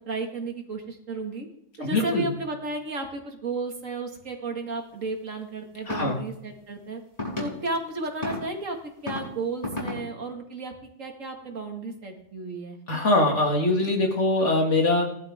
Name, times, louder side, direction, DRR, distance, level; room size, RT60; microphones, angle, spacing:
voice 1, 0.0-1.5 1.8-7.0 7.4-8.8 9.0-13.0, right 3 dB, 85° right, 2 dB, 2.5 m, -33 dB
voice 2, 1.8-2.3 5.9-6.2 12.9-15.0, left 2 dB, 65° left, 1 dB, 2.7 m, -22 dB
sound 1, 5.9-6.1 7.2-7.4 8.2-8.4 9.0-9.2 9.6-10.0, left 2 dB, 30° left, 5.6 m, -30 dB
19.0 x 12.0 x 3.7 m, 0.77 s
omnidirectional pair, 1.3 m